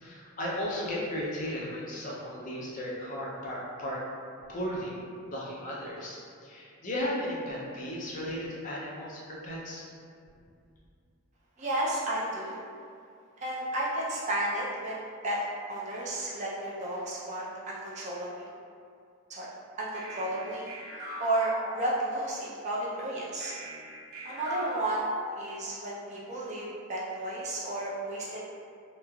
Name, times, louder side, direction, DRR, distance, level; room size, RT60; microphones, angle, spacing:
voice 1, 0.0-4.0 4.5-5.0 5.3-9.9, equal, 35° left, -5 dB, 0.4 m, -35 dB
voice 2, 11.6-12.6 13.4-18.5 19.3-19.5 19.8-20.7 21.2-23.5 24.2-28.4, right 1 dB, 30° right, -5 dB, 0.3 m, -32 dB
sound 1, 19.9-22.4 23.4-25.9, right 1 dB, 70° right, 0.7 m, -41 dB
3.0 x 2.3 x 2.2 m, 2.3 s
head